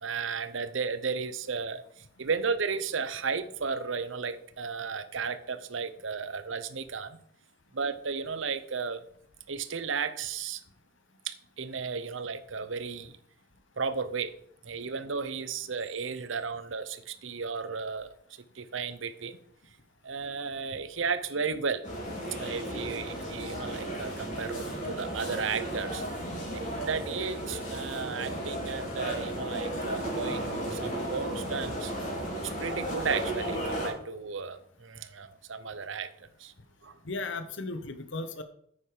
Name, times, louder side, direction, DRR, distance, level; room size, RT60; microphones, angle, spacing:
voice 1, 0.0-7.2 7.7-9.1 9.5-10.6 11.2-13.2 13.8-14.3 14.6-19.4 20.0-21.8 22.4-26.0 26.5-32.2 32.6-36.5 36.8-37.0, right 5 dB, 75° right, 13 dB, 0.8 m, -34 dB
sound 1, 21.8-33.9, right 1 dB, 40° left, 4.4 m, -34 dB
voice 2, 37.0-38.4, left 3 dB, 70° left, 9 dB, 1.0 m, -36 dB
9.4 x 8.4 x 5.0 m, 0.66 s
head